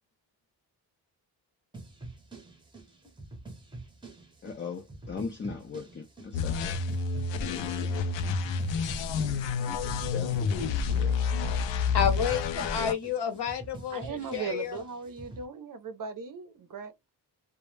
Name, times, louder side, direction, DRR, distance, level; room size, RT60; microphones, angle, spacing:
sound 1, 1.7-15.4, right 2 dB, 10° right, 0.6 m, -47 dB
voice 1, 4.4-6.8 7.3-7.9 9.7-11.2, left 5 dB, 30° left, 0.3 m, -39 dB
sound 2, 6.3-12.9, left 5 dB, 85° left, 0.5 m, -29 dB
voice 2, 11.9-14.8, left 7 dB, 65° left, 0.8 m, -30 dB
voice 3, 13.9-17.1, right 6 dB, 50° right, 0.6 m, -38 dB
2.1 x 2.1 x 3.0 m
wide cardioid pair, 160°, 44 cm